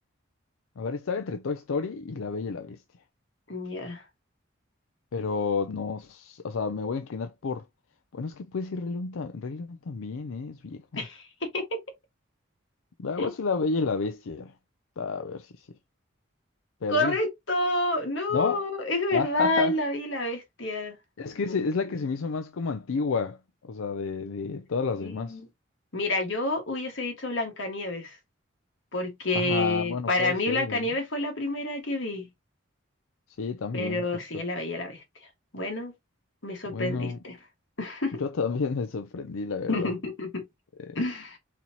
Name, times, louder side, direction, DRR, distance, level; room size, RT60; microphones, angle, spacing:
voice 1, 0.8-2.8 5.1-7.6 8.1-11.0 13.0-14.5 15.0-15.7 16.8-17.2 18.3-18.6 19.1-19.7 21.2-23.4 23.6-25.4 29.3-30.9 33.4-34.0 34.3-34.4 36.7-37.2 38.2-39.9 40.9-41.0, left 4 dB, 85° left, 0.5 m, -31 dB
voice 2, 3.5-4.0 11.0-11.8 13.2-13.3 16.9-21.0 21.5-21.6 25.0-25.5 25.9-28.2 28.9-32.3 33.7-35.0 35.5-35.9 36.4-37.4 37.8-38.2 39.7-40.5 41.0-41.4, left 2 dB, 65° left, 1.7 m, -29 dB
4.2 x 4.1 x 2.9 m
head